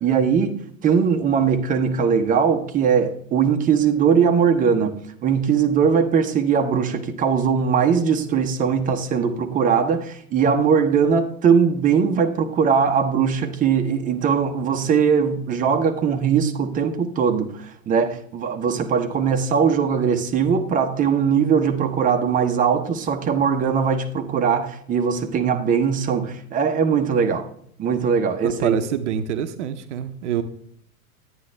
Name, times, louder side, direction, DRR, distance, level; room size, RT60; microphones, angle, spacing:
voice 1, 0.0-4.9 5.2-27.5 27.8-28.9, right 6 dB, 20° right, 0.8 m, -20 dB
voice 2, 28.4-30.4, right 9 dB, 55° right, 0.8 m, -26 dB
9.8 x 9.6 x 3.3 m
figure-of-eight pair, 95°, 43 cm